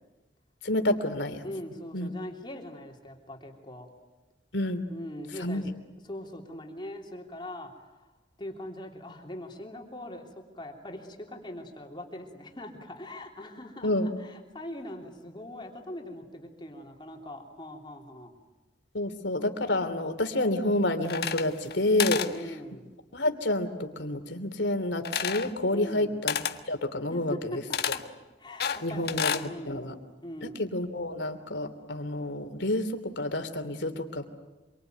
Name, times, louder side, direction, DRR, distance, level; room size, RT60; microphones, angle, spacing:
voice 1, 0.6-1.5 1.9-2.1 4.5-4.8 5.4-5.7 13.8-14.1 18.9-22.2 22.5-22.6 23.1-27.6 28.8-29.9 30.4-34.2, left 1 dB, 80° left, 7 dB, 3.0 m, -29 dB
voice 2, 1.4-3.9 4.9-5.6 6.1-8.0 8.4-10.3 10.5-18.3 22.1-22.9 25.7-26.1 27.1-27.2 27.5-28.0 28.4-29.9 30.2-30.6, left 1 dB, 25° left, 1 dB, 3.3 m, -42 dB
sound 1, 21.0-21.7 22.0-22.3 25.1-25.5 26.3-26.6 27.7-28.0 28.6-29.5, left 8 dB, 60° left, 1.5 m, -30 dB
27.0 x 24.0 x 9.3 m, 1.1 s
head